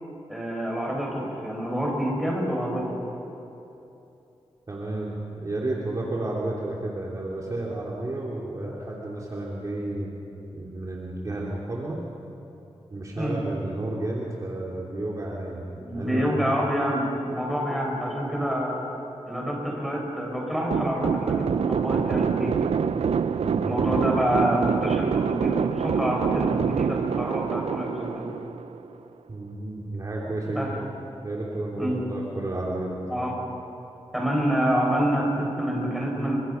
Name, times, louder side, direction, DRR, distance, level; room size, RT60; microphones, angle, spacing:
voice 1, 0.3-3.0 13.2-13.4 15.8-18.8 19.3-22.6 23.6-28.3 30.5-30.7 31.8-32.0 33.1-33.3 34.1-36.4, equal, ahead, -2 dB, 6.3 m, -27 dB
voice 2, 4.7-10.2 10.5-12.0 12.9-16.3 23.4-23.8 29.3-30.9 31.2-33.0, right 2 dB, 35° right, -4 dB, 3.1 m, -32 dB
sound 1, 20.7-29.0, right 6 dB, 75° right, 0.7 m, -26 dB
29.5 x 25.5 x 5.8 m, 2.9 s
wide cardioid pair, 140°, 11 cm